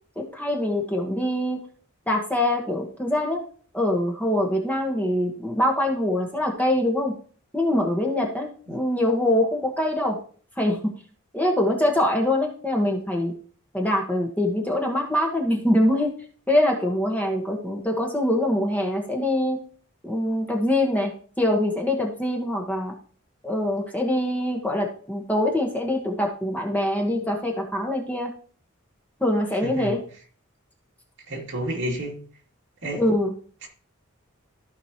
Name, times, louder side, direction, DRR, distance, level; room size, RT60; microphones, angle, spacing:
voice 1, 0.2-1.6 2.1-3.4 3.7-7.1 7.5-10.2 10.6-10.9 11.3-13.3 13.7-16.1 16.5-19.6 20.0-21.1 21.4-22.9 23.4-28.3 29.2-30.0 32.9-33.3, left 1 dB, 10° left, 0 dB, 1.4 m, -24 dB
voice 2, 29.6-30.0 31.3-32.2 32.8-33.0 33.6-33.7, right 1 dB, 60° right, -2 dB, 2.7 m, -30 dB
14.5 x 5.1 x 3.0 m, 0.43 s
head